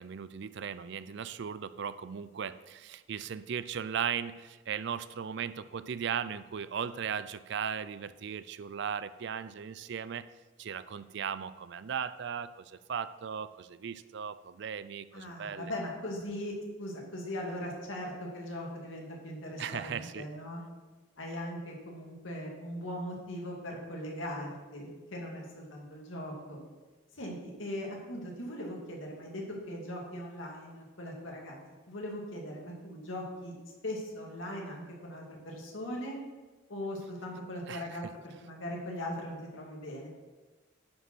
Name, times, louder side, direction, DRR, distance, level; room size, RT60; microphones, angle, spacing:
voice 1, 0.0-10.3 10.6-15.7 19.6-20.3 37.7-38.1, right 7 dB, 60° right, 14 dB, 0.4 m, -37 dB
voice 2, 15.1-20.6 21.2-26.6 27.1-31.6 31.9-33.5 33.8-36.1 36.7-40.1, left 1 dB, 75° left, -1 dB, 2.4 m, -40 dB
10.0 x 5.2 x 6.1 m, 1.3 s
head